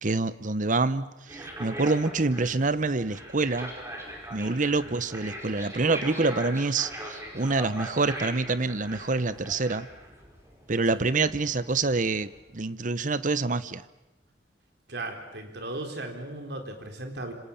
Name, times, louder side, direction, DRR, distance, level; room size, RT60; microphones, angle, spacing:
voice 1, 0.0-3.7 4.3-9.9 10.7-13.8, right 3 dB, 45° right, 15 dB, 0.9 m, -26 dB
sound 1, 1.3-12.4, right 1 dB, 15° right, 5.3 m, -41 dB
voice 2, 14.9-17.3, right 2 dB, 65° right, 4 dB, 4.1 m, -36 dB
27.0 x 26.0 x 7.3 m, 0.99 s
head